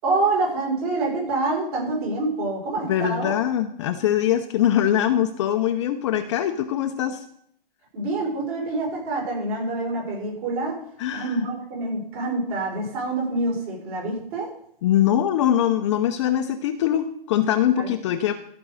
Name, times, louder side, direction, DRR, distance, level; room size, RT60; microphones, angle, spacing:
voice 1, 0.0-3.3 7.9-10.8 11.1-14.5 17.8-17.9, right 2 dB, 40° right, -2 dB, 5.5 m, -26 dB
voice 2, 2.8-7.2 11.0-11.4 14.8-18.3, left 11 dB, 30° left, 8 dB, 0.6 m, -22 dB
14.0 x 5.3 x 6.4 m, 0.67 s
hypercardioid pair, 140°, 30 cm